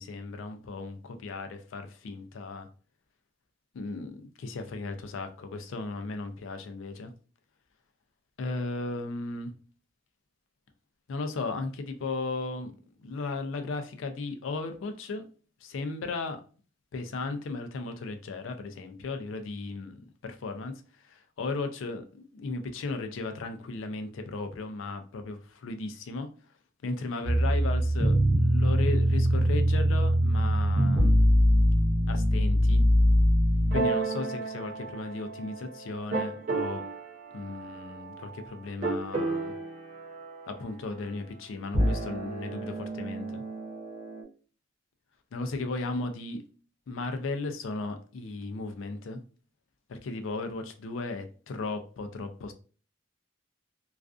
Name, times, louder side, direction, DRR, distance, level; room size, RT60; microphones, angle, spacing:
voice 1, 0.0-2.7 3.7-7.1 8.4-9.5 11.1-12.7 13.0-15.3 15.6-16.4 16.9-20.7 21.0-26.3 26.8-31.5 32.1-32.8 33.7-36.8 37.3-39.5 40.5-43.4 45.3-46.4 46.9-49.2 49.9-52.5, left 3 dB, 85° left, 0.4 m, -36 dB
sound 1, 27.2-35.6 36.1-37.0 38.8-40.5 41.6-44.2, equal, 45° right, 0.5 m, -25 dB
2.4 x 2.3 x 2.3 m
head